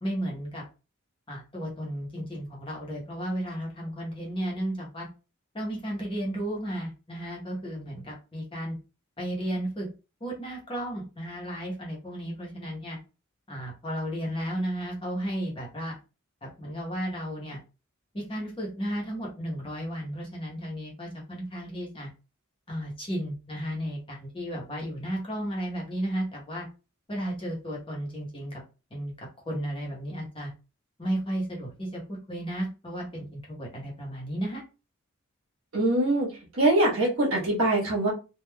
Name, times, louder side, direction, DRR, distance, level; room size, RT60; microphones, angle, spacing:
voice 1, 0.0-0.6 1.3-5.1 5.5-8.8 9.2-9.9 10.2-13.0 13.5-15.9 16.4-17.6 18.1-22.1 22.7-26.7 27.1-28.6 28.9-29.1 29.5-30.5 31.0-34.6, equal, 25° left, -2 dB, 0.9 m, -33 dB
voice 2, 35.7-38.1, right 1 dB, 70° right, -3 dB, 1.3 m, -23 dB
3.3 x 2.4 x 2.2 m, 0.31 s
head